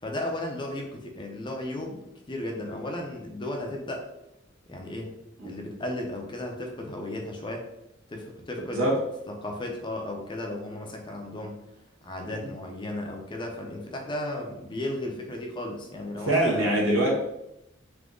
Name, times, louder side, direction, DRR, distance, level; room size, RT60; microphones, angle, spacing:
voice 1, 0.0-2.0 2.3-4.0 4.7-5.2 5.4-7.7 8.1-8.9 9.3-11.6 12.0-16.7, left 1 dB, 25° left, 1 dB, 0.6 m, -35 dB
voice 2, 16.2-17.1, right 1 dB, 75° right, -3 dB, 1.4 m, -23 dB
3.6 x 2.8 x 3.7 m, 0.86 s
head